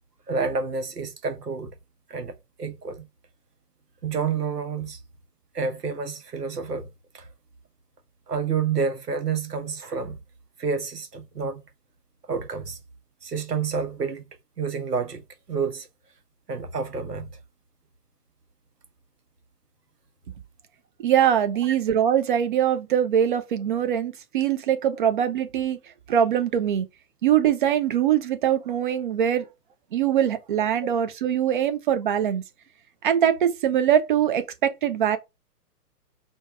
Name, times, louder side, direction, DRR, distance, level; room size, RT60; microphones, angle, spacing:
voice 1, 0.3-1.7 2.1-2.3 2.6-3.1 4.0-5.0 5.5-6.9 7.1-7.3 8.3-10.2 10.6-11.6 12.3-12.8 13.2-14.2 14.6-15.2 15.5-15.9 16.5-17.3 30.8-30.9, right 5 dB, 85° right, 1.1 m, -29 dB
voice 2, 21.0-25.8 26.1-26.9 27.2-29.5 29.9-32.4 33.0-35.2, right 9 dB, 35° right, 0.5 m, -22 dB
4.5 x 2.3 x 4.4 m
figure-of-eight pair, 125°, 47 cm